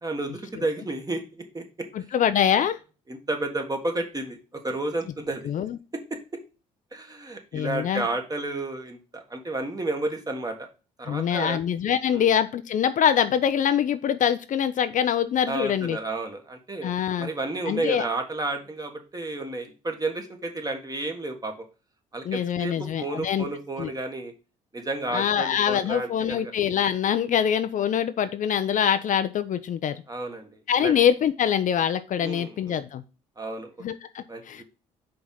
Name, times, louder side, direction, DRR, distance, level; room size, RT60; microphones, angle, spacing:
voice 1, 0.0-1.9 3.1-5.5 6.9-10.7 11.0-11.6 12.1-12.3 15.4-16.9 17.2-21.5 22.1-24.3 24.7-26.5 30.1-30.5 30.8-30.9 32.2-32.7 33.4-33.7 34.3-34.6, right 2 dB, 20° right, 4 dB, 1.4 m, -31 dB
voice 2, 1.9-2.8 5.4-5.8 7.5-8.1 11.1-16.0 16.8-17.3 17.7-18.0 22.2-23.5 23.8-23.9 25.1-30.0 30.7-33.0 33.8-34.6, left 9 dB, 50° left, 11 dB, 0.5 m, -24 dB
5.1 x 3.4 x 5.6 m, 0.32 s
hypercardioid pair, 55°, 17 cm